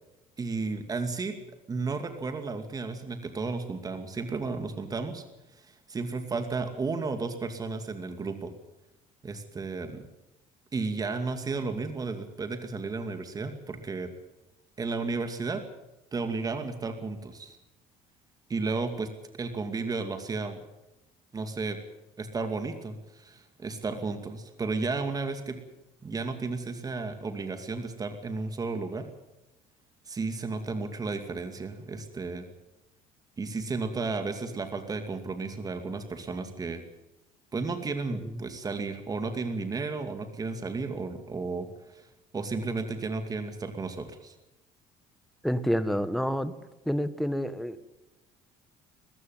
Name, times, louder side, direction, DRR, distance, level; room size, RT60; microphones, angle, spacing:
voice 1, 0.4-1.4 1.7-5.2 5.6-8.5 9.2-10.0 10.7-14.1 14.8-15.6 16.1-17.6 18.5-19.1 19.4-20.6 21.3-21.8 22.2-25.6 26.0-29.1 30.1-32.5 33.4-36.8 37.5-41.7 41.9-42.0 42.3-44.3, right 4 dB, 25° right, 7 dB, 2.4 m, -33 dB
voice 2, 45.4-46.5 46.8-47.8, equal, ahead, 12 dB, 1.4 m, -28 dB
21.0 x 15.0 x 9.4 m, 0.94 s
cardioid pair, 110°, 15 cm